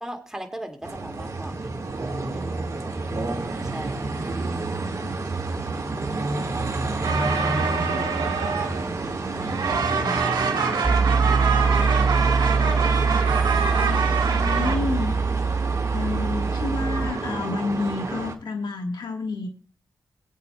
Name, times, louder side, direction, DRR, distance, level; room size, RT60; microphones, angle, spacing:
voice 1, 0.0-1.7 2.3-3.0 3.7-4.0 13.9-14.1, right 1 dB, 5° right, 3 dB, 2.1 m, -38 dB
sound 1, 0.8-18.3, right 3 dB, 45° right, 1.7 m, -29 dB
sound 2, 7.0-9.1 9.4-14.8, right 5 dB, 80° right, 1.5 m, -25 dB
voice 2, 9.9-10.8 13.8-15.1 15.9-19.5, left 3 dB, 75° left, 4 dB, 1.4 m, -30 dB
Piano, 10.8-17.1, right 5 dB, 25° right, 0.9 m, -23 dB
19.5 x 8.5 x 2.3 m, 0.39 s
cardioid pair, 60°, 7 cm